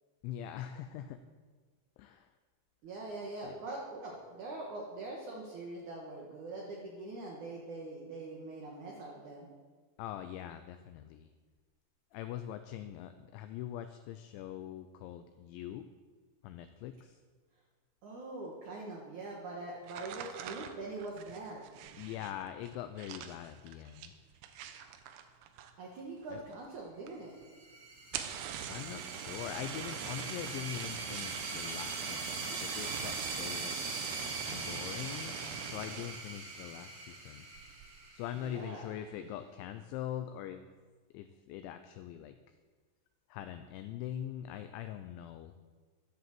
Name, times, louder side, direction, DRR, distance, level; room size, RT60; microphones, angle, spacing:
voice 1, 0.2-1.2 2.0-2.3 3.4-3.6 10.0-11.3 12.1-15.9 16.4-17.2 22.0-24.1 26.3-26.4 28.7-33.9 34.5-37.5 38.1-40.7 41.1-42.4 43.3-45.5, left 11 dB, 85° left, 9 dB, 2.7 m, -43 dB
voice 2, 2.8-9.5 18.0-21.6 25.8-27.3 38.4-38.9, right 2 dB, 60° right, -2 dB, 2.1 m, -43 dB
sound 1, 19.8-26.0 26.3-26.8 27.1-27.2 27.4-27.5 28.0-36.3 36.8-37.1 37.5-37.9, right 9 dB, 90° right, 3.6 m, -43 dB
sound 2, 27.4-38.7, right 3 dB, 40° right, 3.8 m, -42 dB
11.0 x 10.5 x 7.6 m, 1.5 s
omnidirectional pair, 5.8 m